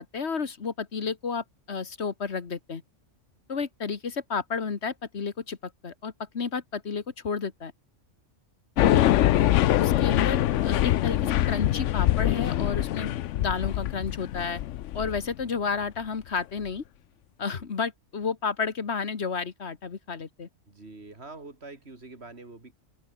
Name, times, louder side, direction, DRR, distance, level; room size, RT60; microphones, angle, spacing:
voice 1, 0.0-2.8 3.5-7.7 8.8-9.2 9.8-14.6 14.9-16.8 17.4-20.5, left 5 dB, 60° left, 1.7 m, -31 dB
sound 1, 8.8-15.3, left 13 dB, 80° left, 0.9 m, -24 dB
voice 2, 20.7-22.7, right 3 dB, 60° right, 3.8 m, -45 dB
omnidirectional pair, 1.3 m